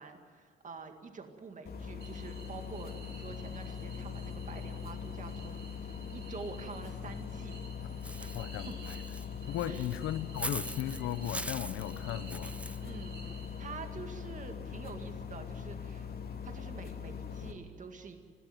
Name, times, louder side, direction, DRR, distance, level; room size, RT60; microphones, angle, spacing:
voice 1, 0.0-7.6 8.2-8.3 8.7-8.8 9.7-9.9 12.8-16.1 16.4-18.2, right 4 dB, 40° right, 5 dB, 2.0 m, -47 dB
sound 1, 1.7-17.5, left 7 dB, 50° left, 2.4 m, -42 dB
sound 2, 2.0-14.0, right 4 dB, 65° right, 5.7 m, -54 dB
Walk footsteps / Bird, 8.0-12.8, right 1 dB, 5° right, 0.6 m, -42 dB
voice 2, 8.3-9.0 9.5-12.5, left 12 dB, 90° left, 12 dB, 0.8 m, -36 dB
21.0 x 16.0 x 9.4 m, 2.2 s
cardioid pair, 90°, 20 cm